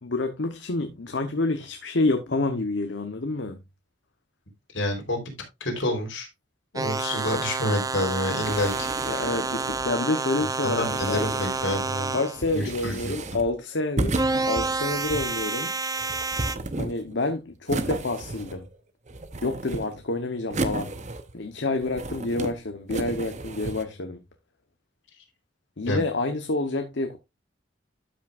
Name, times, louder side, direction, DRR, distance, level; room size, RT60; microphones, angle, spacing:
voice 1, 0.0-3.6 9.1-11.2 12.1-14.2 14.4-15.7 16.8-18.7 19.4-20.9 21.3-24.2 25.8-27.2, left 2 dB, 70° left, 0.9 m, -28 dB
voice 2, 4.7-5.3 5.6-6.3 6.7-9.3 10.6-12.2 12.5-13.1 25.9-26.0, left 1 dB, 85° left, 3.7 m, -28 dB
sound 1, 6.7-12.4 14.1-16.6, right 4 dB, 20° right, 0.5 m, -29 dB
sound 2, 8.4-9.9 10.7-11.8 12.4-13.5 14.0-15.4 16.0-17.2 17.7-18.8 19.1-20.0 20.5-21.5 21.8-22.5 22.9-23.8, right 2 dB, 40° right, 0.8 m, -33 dB
12.5 x 6.0 x 2.4 m
head